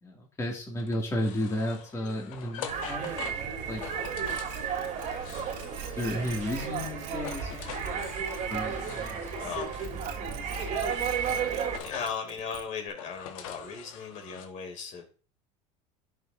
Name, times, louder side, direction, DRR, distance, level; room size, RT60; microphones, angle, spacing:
voice 1, 0.0-3.8 5.8-9.5 10.2-10.5, equal, 15° left, 2.2 m, -34 dB
sound 1, 0.8-6.8 7.1-10.0 10.6-12.2 12.8-14.5, left 9 dB, 85° left, 1.2 m, -45 dB
sound 2, 2.7-11.8, right 7 dB, 45° right, 2.2 m, -33 dB
sound 3, 4.0-9.5 9.8-12.9, right 8 dB, 70° right, 1.4 m, -44 dB
voice 2, 9.4-9.7 11.8-15.0, left 6 dB, 45° left, 2.7 m, -37 dB
10.5 x 6.7 x 2.6 m
supercardioid pair, 115°, 17 cm